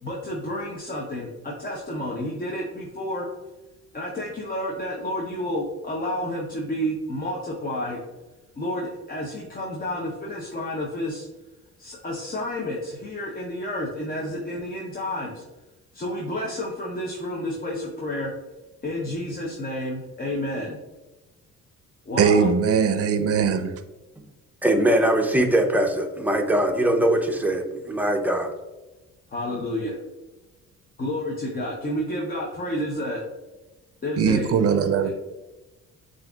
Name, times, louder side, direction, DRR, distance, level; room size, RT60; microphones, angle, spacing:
voice 1, 0.0-3.3 3.9-8.0 8.6-11.3 11.8-15.4 15.9-18.3 18.8-20.8 22.1-22.5 29.3-30.0 31.0-33.2 34.0-34.6 35.0-35.1, left 1 dB, 30° left, 0.8 m, -30 dB
voice 2, 22.2-23.7 34.2-35.1, right 6 dB, 50° right, 0.5 m, -20 dB
voice 3, 24.6-28.5, right 1 dB, 5° right, 0.6 m, -21 dB
7.4 x 2.6 x 2.4 m
cardioid pair, 90°, 30 cm